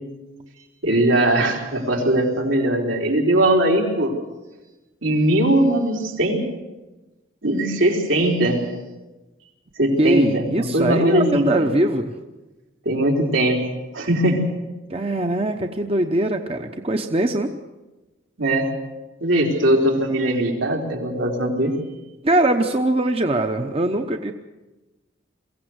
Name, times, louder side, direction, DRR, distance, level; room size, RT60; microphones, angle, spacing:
voice 1, 0.8-4.1 5.0-6.4 7.4-8.6 9.8-11.7 12.9-13.6 13.9-14.5 18.4-18.7 19.2-21.7, right 1 dB, 85° right, 0 dB, 3.9 m, -20 dB
voice 2, 10.0-12.1 14.9-17.5 22.2-24.3, right 1 dB, 30° right, 5 dB, 0.9 m, -21 dB
23.0 x 16.0 x 7.9 m, 1.1 s
head